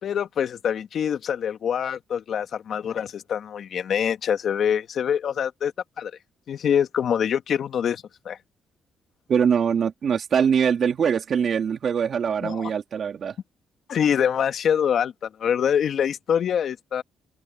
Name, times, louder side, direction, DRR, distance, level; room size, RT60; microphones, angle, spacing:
voice 1, 0.0-6.1 6.5-8.4 12.4-12.7 13.9-17.0, left 8 dB, 60° left, 2.1 m, -25 dB
voice 2, 9.3-13.3, right 7 dB, 55° right, 3.2 m, -23 dB
cardioid pair, 90°, 0 cm